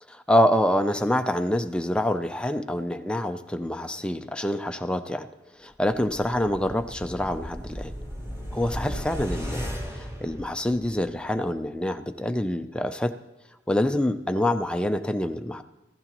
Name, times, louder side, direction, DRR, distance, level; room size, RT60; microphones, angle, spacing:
voice 1, 0.1-5.3 5.6-7.9 8.5-13.1 13.7-15.6, left 1 dB, 5° left, 7 dB, 0.5 m, -26 dB
sound 1, 6.0-11.1 11.5-11.6, equal, 15° right, 3.3 m, -36 dB
15.0 x 15.0 x 3.0 m, 1.0 s
head